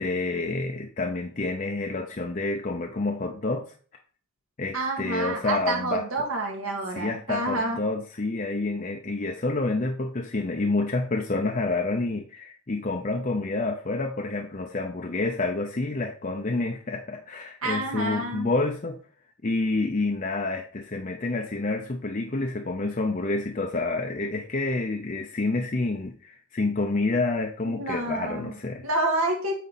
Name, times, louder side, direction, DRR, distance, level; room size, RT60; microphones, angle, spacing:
voice 1, 0.0-3.7 4.6-6.0 7.0-19.0 19.4-28.9, left 2 dB, 35° left, 3 dB, 0.6 m, -28 dB
voice 2, 4.7-7.8 17.6-18.5 27.6-28.6 28.8-29.5, right 2 dB, 85° right, 1 dB, 2.1 m, -28 dB
9.1 x 4.1 x 4.2 m, 0.43 s
head